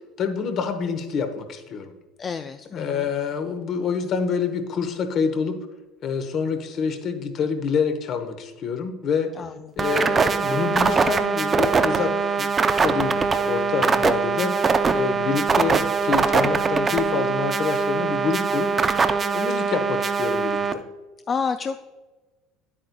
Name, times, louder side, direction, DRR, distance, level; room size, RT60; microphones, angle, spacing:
voice 1, 0.2-1.9 2.7-5.6 6.0-9.3 9.8-12.5 12.8-14.7 14.9-18.7 19.3-20.8, left 6 dB, 50° left, 7 dB, 1.1 m, -27 dB
voice 2, 2.2-3.1 9.4-9.7 15.1-15.5 21.3-21.8, left 5 dB, 30° left, 8 dB, 0.3 m, -30 dB
sound 1, 9.8-20.7, right 5 dB, 25° right, 0.5 m, -22 dB
9.6 x 8.5 x 2.3 m, 1.2 s
supercardioid pair, 115°, 0 cm